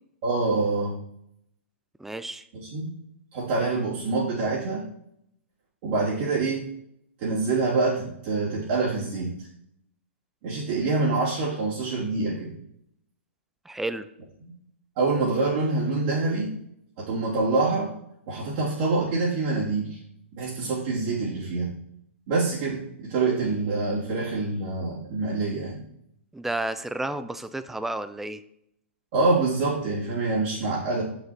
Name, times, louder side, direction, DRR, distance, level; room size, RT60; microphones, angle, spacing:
voice 1, 0.2-1.0 2.5-2.9 3.3-4.8 5.8-6.7 7.2-9.3 10.4-12.5 15.0-16.5 17.0-17.9 18.3-20.0 20.3-21.7 22.3-25.8 29.1-31.0, right 3 dB, 50° right, -8 dB, 2.9 m, -26 dB
voice 2, 2.0-2.4 13.7-14.1 26.3-28.4, right 2 dB, 5° right, 12 dB, 0.4 m, -31 dB
6.7 x 6.3 x 4.3 m, 0.74 s
hypercardioid pair, 125°, 7 cm